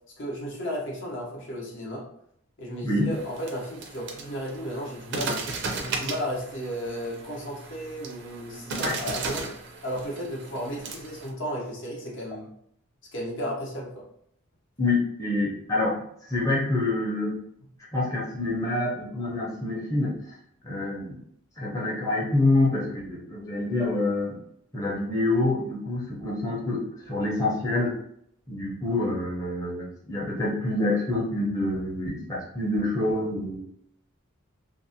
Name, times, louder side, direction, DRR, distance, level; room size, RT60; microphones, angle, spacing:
voice 1, 0.2-2.0 2.6-5.4 5.7-9.5 9.8-12.5 13.1-14.0, equal, 60° left, -2 dB, 0.7 m, -34 dB
sound 1, 3.1-11.3, right 3 dB, 55° right, 0.4 m, -36 dB
voice 2, 14.8-17.4 17.9-20.3 20.6-21.2 21.6-24.4 24.7-27.9 28.5-33.6, left 2 dB, 15° left, -6 dB, 0.6 m, -27 dB
2.5 x 2.0 x 2.6 m, 0.71 s
head